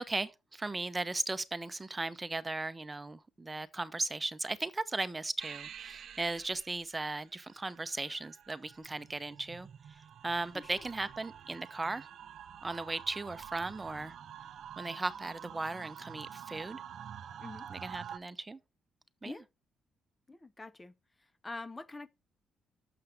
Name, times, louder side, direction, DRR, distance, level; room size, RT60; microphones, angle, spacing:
voice 1, 0.0-9.7 10.2-12.1 12.6-14.1 14.8-16.8 17.7-18.6 19.2-19.4, right 2 dB, 20° right, 0.7 m, -37 dB
sound 1, 5.4-18.2, right 9 dB, 65° right, 0.6 m, -48 dB
voice 2, 20.3-20.9 21.4-22.1, left 3 dB, 20° left, 0.5 m, -45 dB
6.9 x 5.7 x 4.8 m
cardioid pair, 90°, 0 cm